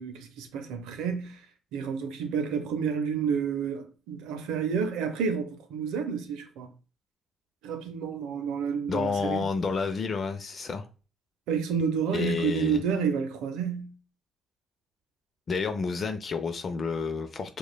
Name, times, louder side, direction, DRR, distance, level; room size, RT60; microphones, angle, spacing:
voice 1, 0.0-1.4 1.7-6.7 7.6-9.4 11.5-13.9, right 6 dB, 85° right, 0.6 m, -30 dB
voice 2, 8.9-10.8 12.1-12.8 15.5-17.6, left 5 dB, 50° left, 0.5 m, -30 dB
4.8 x 2.3 x 2.3 m
supercardioid pair, 60°, 0 cm